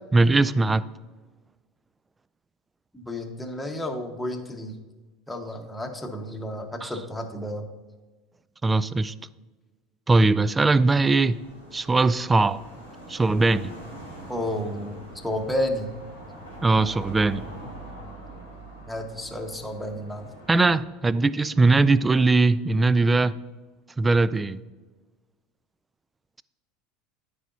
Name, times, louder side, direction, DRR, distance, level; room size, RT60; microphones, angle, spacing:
voice 1, 0.1-0.8 6.8-6.9 8.6-9.1 10.1-11.4 11.7-12.6 13.1-13.7 16.6-17.4 20.5-23.3 24.0-24.6, right 3 dB, 15° right, 0.3 m, -20 dB
voice 2, 2.9-4.8 5.3-7.7 14.3-15.0 15.2-16.0 18.9-20.3, left 1 dB, 5° left, 1.3 m, -31 dB
sound 1, 10.4-20.8, right 1 dB, 90° right, 2.6 m, -43 dB
13.5 x 4.9 x 2.7 m
hypercardioid pair, 75°, 0 cm